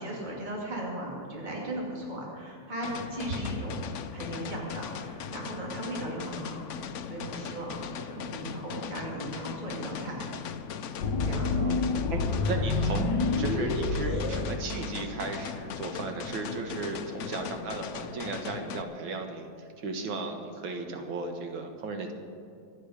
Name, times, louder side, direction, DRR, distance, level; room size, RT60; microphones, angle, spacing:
voice 1, 0.0-3.9 4.1-6.5 7.1-10.2 11.2-11.6, right 1 dB, 25° right, -3 dB, 2.7 m, -37 dB
sound 1, 2.8-18.8, left 7 dB, 85° left, 0.6 m, -39 dB
sound 2, 11.0-15.3, left 3 dB, 65° left, 1.6 m, -28 dB
voice 2, 11.5-11.8 12.1-19.5 19.8-22.1, right 3 dB, 85° right, 4 dB, 2.2 m, -36 dB
25.0 x 8.7 x 5.0 m, 2.5 s
omnidirectional pair, 2.1 m